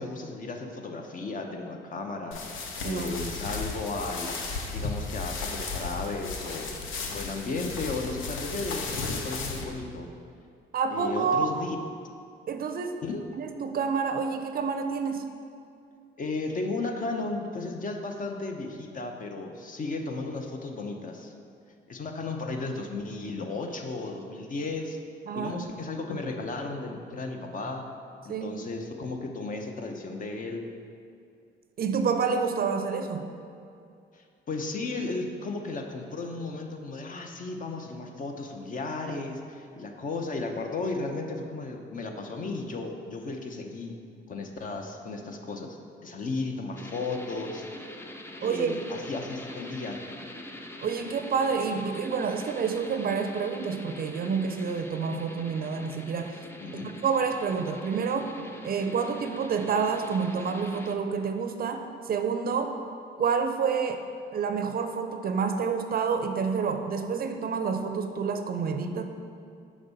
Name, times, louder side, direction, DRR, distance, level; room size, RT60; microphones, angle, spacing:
voice 1, 0.0-4.3 4.7-6.8 7.1-10.1 10.9-11.8 13.0-13.2 16.2-21.3 21.9-25.0 25.3-27.8 28.2-30.6 34.1-44.0 44.3-45.8 46.0-47.6 48.4-50.0 56.6-56.9, left 3 dB, 45° left, 3 dB, 0.7 m, -34 dB
sound 1, 2.3-9.6, left 4 dB, 85° left, 0.7 m, -34 dB
voice 2, 10.7-11.7 12.5-13.0 13.3-15.3 25.3-25.6 28.3-28.5 31.8-33.3 48.4-48.8 50.8-56.4 56.8-58.3 58.6-62.8 63.2-64.0 64.3-69.0, right 5 dB, 50° right, 7 dB, 0.5 m, -28 dB
sound 2, 46.8-60.9, left 1 dB, 10° left, 0.5 m, -44 dB
6.1 x 5.2 x 4.1 m, 2.4 s
cardioid pair, 90°, 20 cm